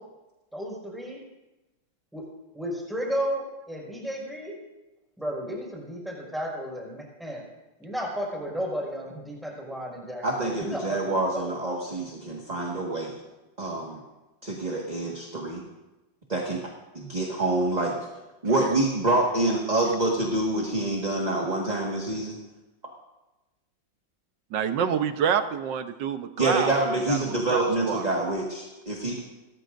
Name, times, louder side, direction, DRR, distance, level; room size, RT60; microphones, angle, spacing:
voice 1, 0.5-1.2 2.1-2.2 2.5-4.6 5.2-7.4 7.8-11.7, equal, ahead, -3 dB, 5.3 m, -33 dB
voice 2, 10.2-13.1 13.6-14.0 14.4-15.6 16.3-16.6 16.9-18.0 18.4-22.4 26.4-29.2, right 2 dB, 20° right, -1 dB, 1.7 m, -26 dB
voice 3, 24.5-26.8 27.1-28.1, right 8 dB, 70° right, 9 dB, 1.5 m, -27 dB
29.5 x 14.5 x 2.6 m, 1.0 s
omnidirectional pair, 2.1 m